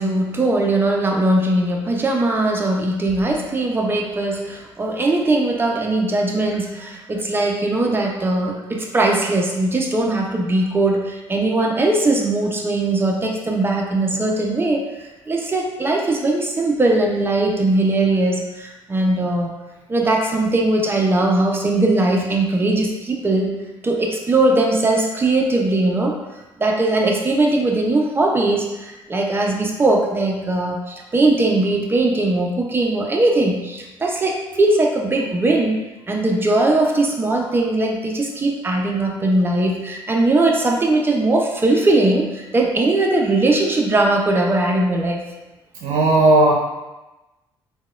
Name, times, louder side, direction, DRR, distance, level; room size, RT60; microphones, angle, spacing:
voice 1, 0.0-19.5 19.9-23.5 23.8-26.2 26.6-35.8 36.1-45.2, right 2 dB, 20° right, 1 dB, 0.5 m, -20 dB
voice 2, 45.8-46.5, right 2 dB, 85° right, -3 dB, 0.5 m, -14 dB
4.0 x 2.2 x 2.3 m, 1.1 s
cardioid pair, 105°, 10 cm